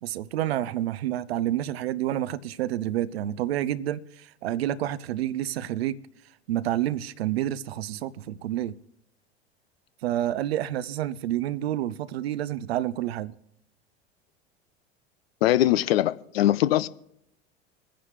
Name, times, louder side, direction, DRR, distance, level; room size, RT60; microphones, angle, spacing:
voice 1, 0.0-6.0 6.5-8.7 10.0-13.3, right 12 dB, 65° right, 0.6 m, -29 dB
voice 2, 15.4-16.9, left 13 dB, 65° left, 0.6 m, -21 dB
26.0 x 10.0 x 3.2 m
figure-of-eight pair, 75°, 33 cm